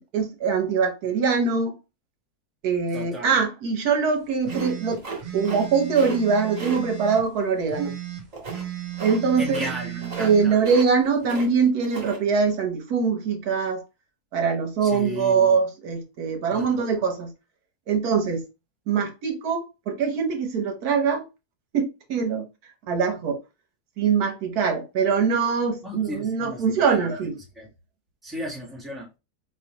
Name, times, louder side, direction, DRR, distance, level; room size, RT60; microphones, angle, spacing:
voice 1, 0.1-1.8 2.6-5.0 5.3-7.9 9.0-9.7 10.2-13.8 14.3-17.3 17.9-18.4 18.9-21.2 21.7-23.4 24.0-27.3, right 5 dB, 75° right, 1.3 m, -23 dB
voice 2, 2.9-3.3 9.4-10.5 14.8-15.5 16.5-17.0 25.8-27.0 27.6-27.7 28.2-29.1, equal, ahead, 1.3 m, -35 dB
sound 1, 4.4-7.2 7.7-10.5, right 12 dB, 45° right, 0.6 m, -35 dB
sound 2, 4.5-5.7 5.9-6.2 6.6-6.8 8.3-8.7 9.0-9.2 9.5-9.8 10.0-10.3 10.6-11.5 11.8-12.2, right 3 dB, 30° right, 1.1 m, -35 dB
4.4 x 3.1 x 2.9 m
omnidirectional pair, 1.6 m